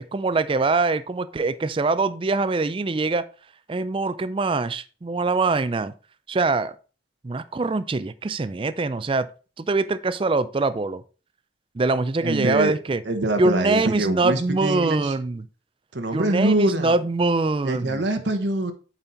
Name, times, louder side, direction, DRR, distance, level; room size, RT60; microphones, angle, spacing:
voice 1, 0.0-3.3 3.7-5.9 6.3-6.7 7.2-9.3 9.6-11.0 11.7-13.0 13.4-15.4 16.1-18.0, right 3 dB, 30° right, 0.4 m, -23 dB
voice 2, 12.2-12.7 13.1-15.2 15.9-16.9 17.6-18.7, right 1 dB, 85° right, 1.2 m, -24 dB
8.9 x 4.2 x 4.3 m
head